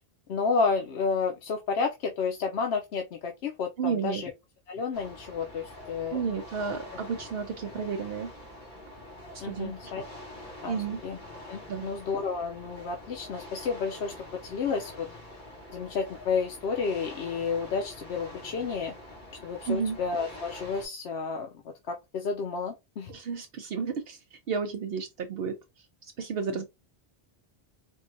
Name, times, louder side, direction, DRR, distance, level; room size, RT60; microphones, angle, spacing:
voice 1, 0.3-4.3 4.7-6.2 9.4-10.0 10.6-11.2 11.5-15.1 15.7-18.9 19.4-21.5 21.9-23.1 26.5-26.7, left 5 dB, 85° left, 0.9 m, -31 dB
voice 2, 3.8-4.2 6.1-8.3 9.4-9.9 10.7-11.0 11.7-11.9 19.7-20.0 23.1-25.6 26.0-26.7, right 6 dB, 70° right, 0.8 m, -32 dB
sound 1, 4.9-20.9, left 1 dB, 50° left, 1.7 m, -45 dB
4.5 x 2.3 x 2.5 m
omnidirectional pair, 1.0 m